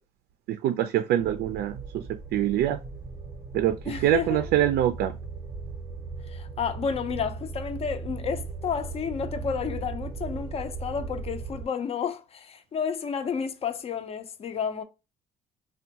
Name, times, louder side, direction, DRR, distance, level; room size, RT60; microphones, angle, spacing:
voice 1, 0.5-2.1 2.3-2.8 3.5-5.2, right 12 dB, 70° right, 0.4 m, -25 dB
sound 1, 1.2-11.6, right 4 dB, 20° right, 0.7 m, -38 dB
voice 2, 3.9-4.4 6.3-14.8, left 6 dB, 35° left, 0.5 m, -31 dB
3.5 x 2.2 x 2.8 m
cardioid pair, 110°, 17 cm